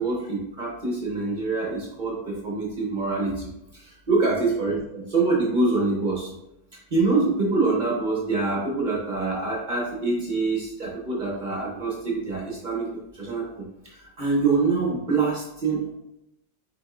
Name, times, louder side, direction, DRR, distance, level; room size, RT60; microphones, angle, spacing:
voice 1, 0.0-6.3 6.9-12.9 13.1-15.9, right 3 dB, 55° right, -3 dB, 0.5 m, -25 dB
5.0 x 4.3 x 2.5 m, 0.84 s
omnidirectional pair, 2.1 m